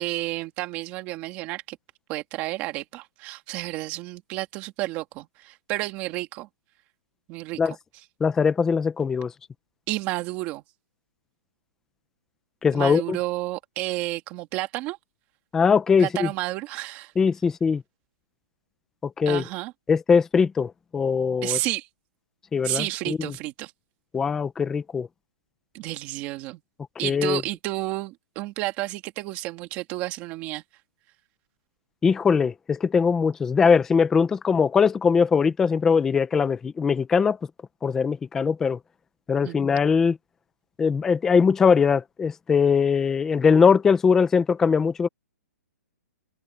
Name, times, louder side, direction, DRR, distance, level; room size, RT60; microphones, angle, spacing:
voice 1, 0.0-1.8 2.1-6.5 7.3-7.8 9.9-10.6 12.7-15.0 16.0-17.1 19.3-19.7 21.4-21.9 22.6-23.7 25.7-26.6 27.0-30.6 39.4-39.6, right 18 dB, 20° right, 2.3 m, -31 dB
voice 2, 8.2-9.3 12.6-13.2 15.5-16.3 17.2-17.8 19.2-19.4 19.9-21.6 22.5-23.3 24.1-25.1 27.0-27.4 32.0-37.4 37.8-38.8 39.3-40.2 40.8-45.1, left 6 dB, 5° left, 0.5 m, -21 dB
hypercardioid pair, 175°, 9 cm